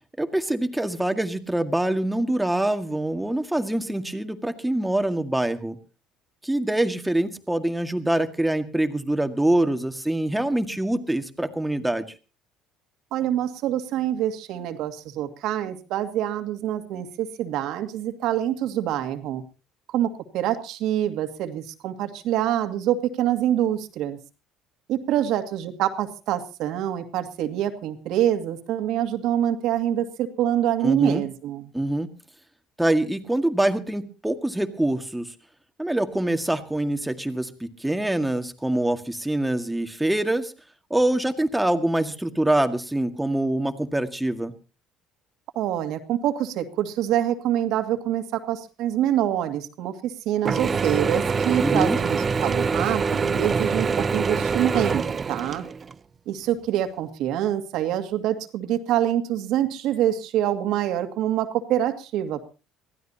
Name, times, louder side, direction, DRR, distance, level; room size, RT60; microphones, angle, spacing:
voice 1, 0.2-5.8 6.4-12.1 30.8-31.2 31.7-32.1 32.8-35.3 35.8-40.5 40.9-44.5 51.6-52.0, right 1 dB, 5° right, 7 dB, 1.9 m, -24 dB
voice 2, 13.1-19.4 19.9-24.2 24.9-31.7 45.6-55.7 56.3-62.5, right 11 dB, 70° right, 7 dB, 2.1 m, -26 dB
Mechanisms / Drill, 50.4-55.9, right 5 dB, 30° right, 0.7 m, -25 dB
23.5 x 15.5 x 2.9 m, 0.34 s
supercardioid pair, 95°, 0 cm